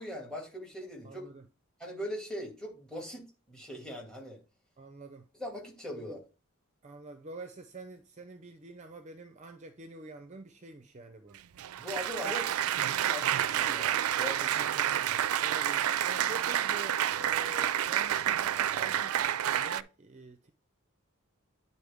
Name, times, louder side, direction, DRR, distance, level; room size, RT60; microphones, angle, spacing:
voice 1, 0.0-1.2 1.8-4.4 5.4-6.2 11.8-12.4 12.8-14.6, equal, 5° left, 2.2 m, -40 dB
voice 2, 1.0-1.5 4.8-5.3 5.9-6.1 6.8-11.4 12.2-12.5 14.4-20.5, right 2 dB, 35° right, 0.5 m, -47 dB
Applause, 11.3-19.8, right 10 dB, 80° right, 0.4 m, -29 dB
9.8 x 4.2 x 3.5 m
head